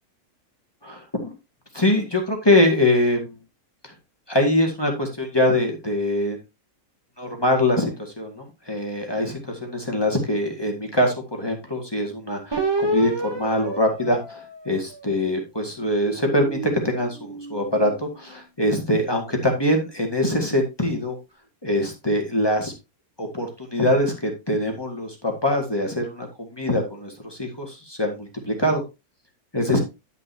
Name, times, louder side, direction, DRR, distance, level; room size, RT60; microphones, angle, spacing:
voice 1, 0.8-1.3 1.7-3.3 3.8-3.9 4.3-6.4 7.2-21.2 21.6-22.7 23.2-28.8 29.5-29.8, left 1 dB, 15° left, 2 dB, 2.0 m, -23 dB
sound 1, 12.5-15.2 15.8-18.3, right 2 dB, 20° right, 1.3 m, -31 dB
10.5 x 6.8 x 2.8 m, 0.25 s
omnidirectional pair, 1.5 m